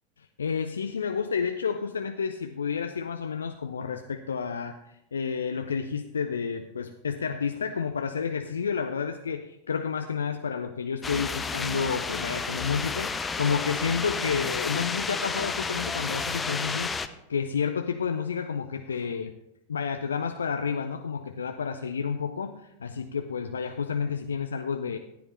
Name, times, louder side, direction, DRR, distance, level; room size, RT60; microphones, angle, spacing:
voice 1, 0.2-16.9 17.3-19.3 19.7-25.0, left 6 dB, 70° left, 7 dB, 0.5 m, -30 dB
sound 1, 11.0-17.1, left 4 dB, 15° left, 0.6 m, -31 dB
14.0 x 9.9 x 3.3 m, 0.84 s
figure-of-eight pair, 90°, 0 cm